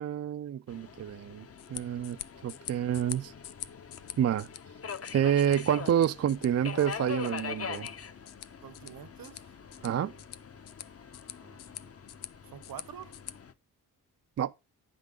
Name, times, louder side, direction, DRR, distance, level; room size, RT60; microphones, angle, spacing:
voice 1, 0.0-2.2 2.4-3.3 4.2-4.5 5.1-7.9 9.8-10.1 14.4-14.5, right 9 dB, 45° right, 0.4 m, -28 dB
Subway metro underground, 0.7-13.5, left 6 dB, 40° left, 0.8 m, -43 dB
sound 1, 1.6-13.3, left 12 dB, 85° left, 0.6 m, -47 dB
voice 2, 8.6-9.5 9.8-10.2 11.4-11.9 12.5-13.1, right 10 dB, 65° right, 0.7 m, -48 dB
9.1 x 3.8 x 5.1 m
cardioid pair, 70°, 38 cm